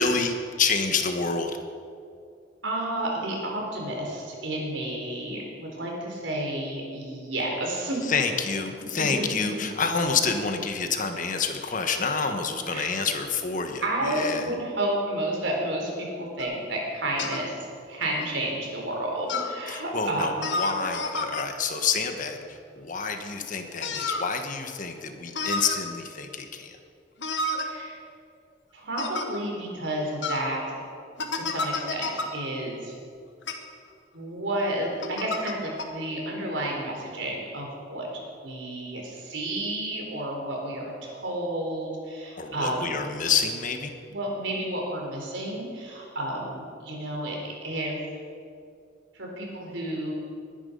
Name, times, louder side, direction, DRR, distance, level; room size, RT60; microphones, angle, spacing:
voice 1, 0.0-1.6 8.0-14.6 19.7-26.8 42.4-43.9, left 5 dB, 45° left, 6 dB, 1.4 m, -28 dB
voice 2, 2.6-8.0 8.9-9.4 12.7-12.9 13.8-15.9 16.2-17.6 17.9-20.3 27.6-28.0 28.7-30.6 31.4-32.9 34.1-38.1 38.4-42.9 44.1-47.9 49.1-50.1, right 1 dB, 80° right, -1 dB, 4.0 m, -31 dB
sound 1, 16.4-16.5 17.2-17.4 18.2-18.3 19.3-19.5 20.4-21.4 23.8-24.3 25.3-25.8 27.2-27.6 29.0-29.3 30.2-30.4 31.2-32.3 33.4-33.5 35.0-35.5 35.8-35.9, left 3 dB, 70° left, 1.4 m, -30 dB
20.5 x 10.5 x 5.4 m, 2.4 s
head